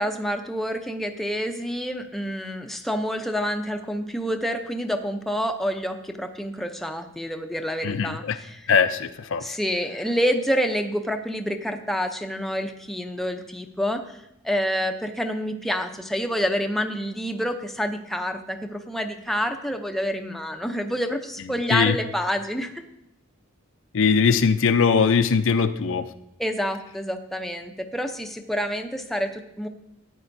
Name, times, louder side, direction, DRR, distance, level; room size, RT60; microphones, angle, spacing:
voice 1, 0.0-8.7 9.4-14.2 14.4-22.8 26.4-29.7, equal, ahead, 5 dB, 0.6 m, -28 dB
voice 2, 7.8-8.4 8.7-9.4 21.7-22.0 23.9-26.1, left 6 dB, 65° left, 10 dB, 0.5 m, -20 dB
14.0 x 9.5 x 2.6 m, 0.81 s
head